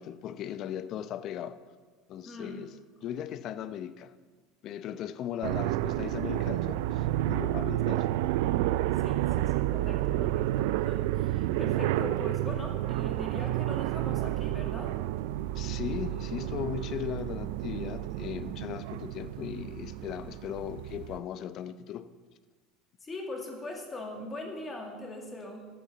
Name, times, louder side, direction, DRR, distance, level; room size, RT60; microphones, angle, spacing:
voice 1, 0.0-1.6 2.1-2.7 3.0-4.1 4.6-8.2 15.5-22.1, left 10 dB, 45° left, 13 dB, 0.7 m, -38 dB
voice 2, 2.2-2.7 9.0-15.0 23.0-25.7, left 2 dB, 20° left, 2 dB, 2.1 m, -41 dB
sound 1, 5.4-21.2, right 15 dB, 80° right, 0.4 m, -30 dB
13.0 x 7.1 x 7.3 m, 1.5 s
supercardioid pair, 140°, 0 cm